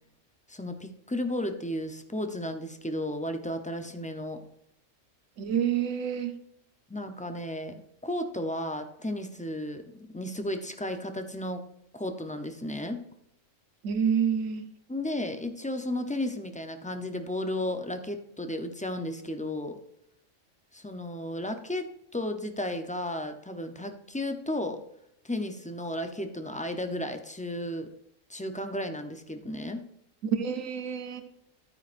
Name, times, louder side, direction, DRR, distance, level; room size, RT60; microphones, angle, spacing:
voice 1, 0.5-4.4 6.9-7.8 8.0-11.6 11.9-13.1 14.9-19.8 20.7-24.8 25.2-27.9 28.3-29.9, left 1 dB, 10° left, 6 dB, 0.3 m, -34 dB
voice 2, 5.4-6.3 13.8-14.6 30.2-31.2, right 7 dB, 90° right, 8 dB, 1.3 m, -28 dB
12.0 x 9.4 x 2.5 m, 0.77 s
omnidirectional pair, 1.3 m